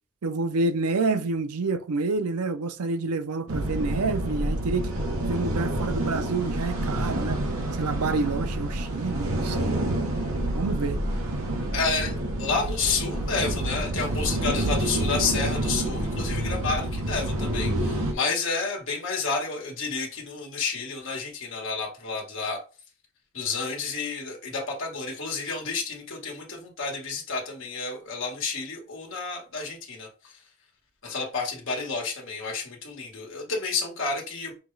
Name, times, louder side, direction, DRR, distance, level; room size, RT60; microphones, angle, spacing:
voice 1, 0.2-4.9 5.3-7.4 7.8-9.7 10.5-11.0, right 3 dB, 90° right, 0.5 m, -28 dB
sound 1, 3.5-18.1, right 1 dB, 70° right, 1.0 m, -28 dB
voice 2, 11.7-22.6 23.3-30.4 31.0-34.6, left 4 dB, 60° left, 1.5 m, -30 dB
5.8 x 2.3 x 3.2 m
head